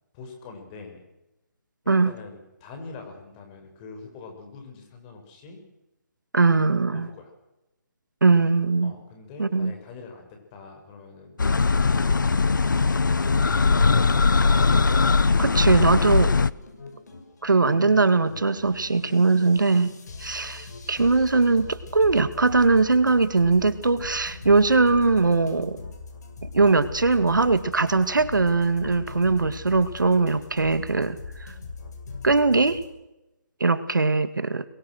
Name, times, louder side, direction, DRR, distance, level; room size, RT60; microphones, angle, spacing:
voice 1, 0.1-1.0 1.8-5.6 6.9-7.3 8.8-11.4 11.8-14.1, left 4 dB, 25° left, 3 dB, 6.8 m, -44 dB
voice 2, 6.3-7.1 8.2-8.9 9.4-9.7 15.4-16.3 17.4-19.9 20.2-25.8 26.4-31.5 32.2-32.8 33.6-34.6, right 3 dB, 90° right, 12 dB, 2.2 m, -21 dB
sound 1, 11.4-16.5, left 4 dB, 85° left, 1.0 m, -20 dB
sound 2, 16.3-32.9, left 4 dB, 60° left, 6.6 m, -41 dB
26.5 x 22.5 x 6.5 m, 0.95 s
hypercardioid pair, 155°, 10 cm